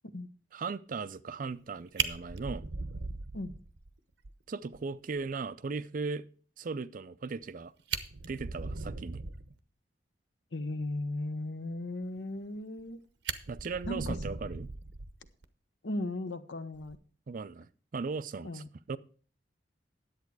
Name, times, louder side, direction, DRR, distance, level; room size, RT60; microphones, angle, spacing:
voice 1, 0.5-2.6 4.5-6.2 6.6-7.7 8.3-9.2 13.5-14.7 17.3-17.7 17.9-19.0, right 4 dB, 50° right, 0.4 m, -37 dB
Fire, 1.5-1.6 2.0-3.9 4.2-4.3 4.7-4.8 5.2-5.3 7.4-7.5 7.8-9.5 12.4-12.9 13.2-15.4 16.7-17.0, right 5 dB, 75° right, 0.9 m, -38 dB
voice 2, 10.5-13.0 13.9-14.2 15.8-17.0 18.4-18.7, left 1 dB, 75° left, 0.9 m, -36 dB
10.5 x 8.2 x 4.7 m
head